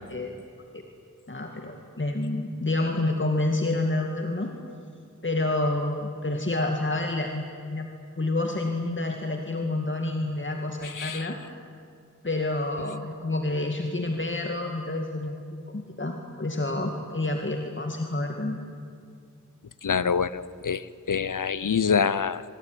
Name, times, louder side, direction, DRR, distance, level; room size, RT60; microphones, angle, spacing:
voice 1, 1.3-4.5 5.2-7.9 8.2-11.4 12.2-15.4 15.7-18.6, left 2 dB, 40° left, 3 dB, 2.3 m, -28 dB
voice 2, 10.8-11.3 19.8-22.4, left 6 dB, 80° left, 17 dB, 0.8 m, -26 dB
25.5 x 22.0 x 10.0 m, 2.3 s
wide cardioid pair, 50°, 31 cm